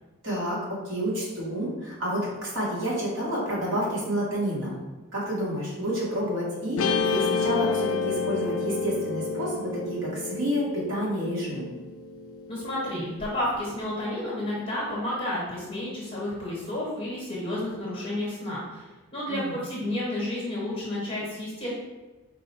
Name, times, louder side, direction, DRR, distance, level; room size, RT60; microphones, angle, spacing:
voice 1, 0.2-4.8 5.1-11.7 19.3-19.5, equal, 55° right, -6 dB, 1.3 m, -29 dB
Guitar, 6.8-13.2, left 4 dB, 65° left, 0.3 m, -30 dB
voice 2, 12.5-21.7, left 1 dB, 25° left, -6 dB, 1.0 m, -31 dB
4.5 x 2.1 x 4.2 m, 1.2 s
head